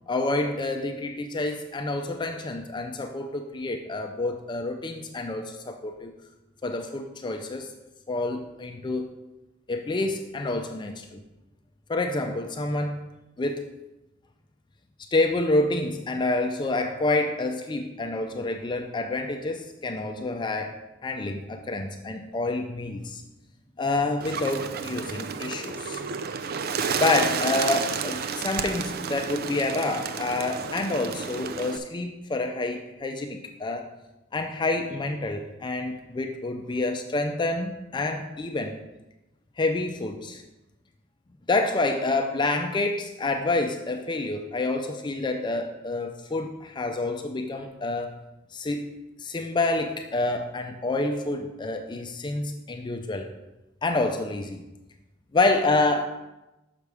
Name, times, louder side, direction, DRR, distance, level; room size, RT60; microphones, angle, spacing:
voice 1, 0.1-6.1 6.6-7.7 8.1-9.1 9.7-11.2 11.9-13.1 13.4-13.8 15.1-23.2 23.8-26.0 27.0-33.9 34.3-38.8 39.6-40.4 41.5-48.1 48.5-53.3 53.8-54.6 55.3-56.1, left 2 dB, 25° left, 5 dB, 0.4 m, -28 dB
Bird, 24.2-31.8, right 6 dB, 50° right, 0.4 m, -31 dB
6.8 x 5.9 x 4.8 m, 1.0 s
head